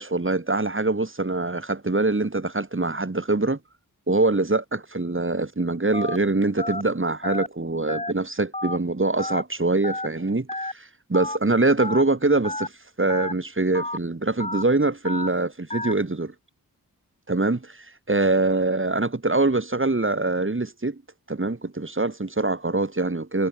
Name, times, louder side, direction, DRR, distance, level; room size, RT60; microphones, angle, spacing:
voice 1, 0.0-3.6 4.1-12.7 13.0-16.3 17.3-21.0 21.3-23.5, right 2 dB, 35° right, 4.7 m, -24 dB
Telephone, 5.9-6.2 6.6-6.8 7.2-7.5 7.9-8.1 8.5-8.8 9.2-9.4 9.8-10.1 10.5-10.7 11.1-11.4 11.8-12.0 12.4-12.7 13.1-13.3 13.7-14.0 14.4-14.6 15.1-15.3 15.7-15.9, left 1 dB, 20° left, 3.4 m, -30 dB
wide cardioid pair, 70°, 37 cm